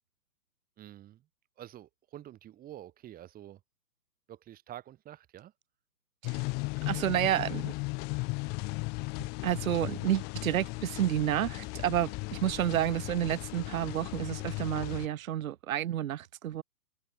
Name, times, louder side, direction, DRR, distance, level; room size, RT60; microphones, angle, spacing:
voice 1, 0.8-1.2 1.6-3.6 4.3-5.5, right 12 dB, 15° right, 3.3 m, -48 dB
sound 1, 6.2-15.1, left 28 dB, 20° left, 1.1 m, -36 dB
voice 2, 6.9-7.7 9.4-16.6, right 11 dB, 55° right, 1.1 m, -30 dB
hypercardioid pair, 140°, 50 cm